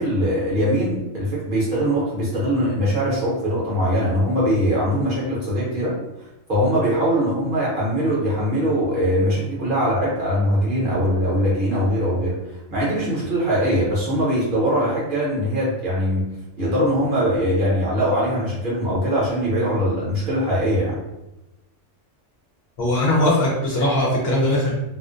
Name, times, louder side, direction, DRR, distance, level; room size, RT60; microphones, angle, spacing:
voice 1, 0.0-5.9 6.5-16.3 16.6-21.0, equal, 45° right, -7 dB, 0.9 m, -21 dB
voice 2, 22.8-24.7, left 1 dB, 60° left, -4 dB, 0.8 m, -20 dB
2.4 x 2.1 x 2.5 m, 0.94 s
omnidirectional pair, 1.3 m